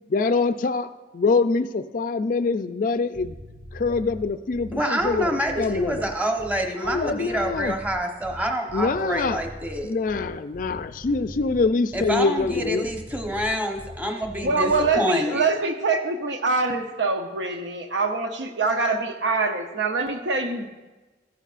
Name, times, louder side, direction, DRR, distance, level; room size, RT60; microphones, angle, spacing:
voice 1, 0.1-3.4 3.7-6.1 6.8-7.8 8.7-9.4 9.8-12.9, left 4 dB, 50° left, 10 dB, 0.4 m, -24 dB
sound 1, 3.0-15.0, equal, 40° right, 1.8 m, -41 dB
voice 2, 4.7-9.9 11.9-15.5, equal, 10° right, 2 dB, 1.0 m, -27 dB
voice 3, 14.4-20.7, right 3 dB, 85° right, 4 dB, 0.8 m, -24 dB
14.5 x 11.0 x 2.5 m, 1.2 s
head